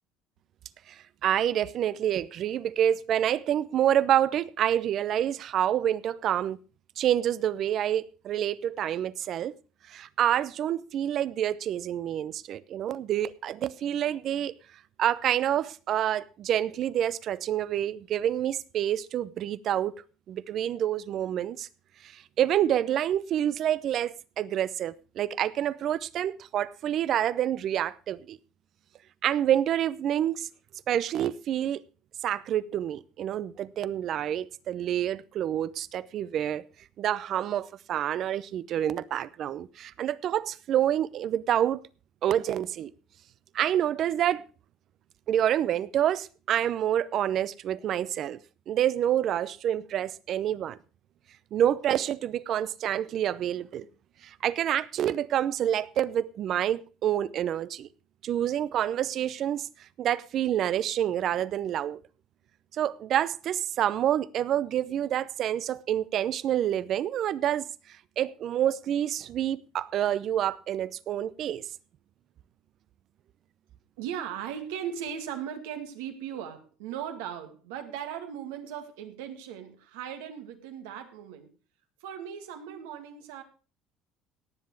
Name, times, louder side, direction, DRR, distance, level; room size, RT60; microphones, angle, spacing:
voice 1, 0.9-6.6 7.0-9.5 9.9-14.5 15.0-19.9 20.3-21.7 22.0-28.4 29.2-30.5 30.9-31.8 32.2-36.6 37.0-41.8 42.2-42.9 43.5-44.4 45.3-48.4 48.7-50.8 51.5-53.9 54.2-57.9 58.2-59.7 60.0-62.0 62.7-71.6, right 11 dB, 55° right, 0.7 m, -28 dB
voice 2, 74.0-81.5 82.0-83.4, right 9 dB, 85° right, 2.1 m, -38 dB
18.0 x 7.5 x 4.7 m
supercardioid pair, 85°, 0 cm